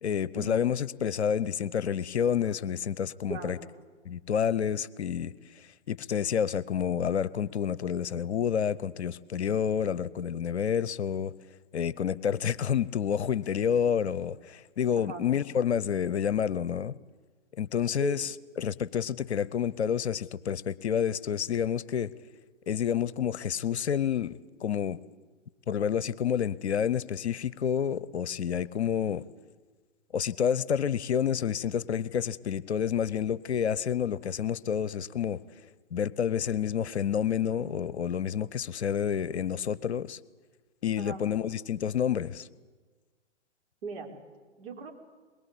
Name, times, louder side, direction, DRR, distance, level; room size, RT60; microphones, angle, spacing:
voice 1, 0.0-3.6 4.0-5.3 5.9-11.3 11.7-16.9 17.6-18.3 18.6-22.1 22.7-24.3 24.6-25.0 25.7-29.2 30.1-35.4 35.9-40.2 40.8-42.5, left 8 dB, 65° left, 19 dB, 0.9 m, -29 dB
voice 2, 43.8-44.1 44.6-44.9, right 5 dB, 50° right, -1 dB, 5.2 m, -38 dB
22.5 x 22.0 x 8.4 m, 1.4 s
figure-of-eight pair, 120°, 36 cm